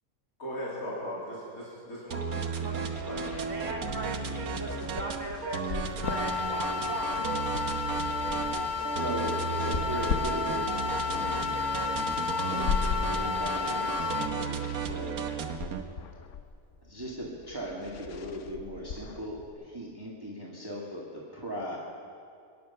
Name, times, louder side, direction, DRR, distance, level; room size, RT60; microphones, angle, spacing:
voice 1, 0.4-3.2, equal, 80° left, -6 dB, 3.2 m, -39 dB
sound 1, 2.1-15.8, right 6 dB, 85° right, 1.4 m, -34 dB
voice 2, 2.3-2.7 3.5-7.3, right 2 dB, 55° right, 0 dB, 2.5 m, -38 dB
sound 2, 2.7-19.5, left 6 dB, 65° left, 1.1 m, -39 dB
sound 3, 6.0-14.3, left 5 dB, 35° left, 1.1 m, -32 dB
voice 3, 8.9-10.5 11.0-11.6 12.5-12.7 13.1-15.2 16.9-21.8, equal, 15° right, -5 dB, 2.0 m, -38 dB
23.5 x 10.5 x 5.7 m, 2.3 s
omnidirectional pair, 1.5 m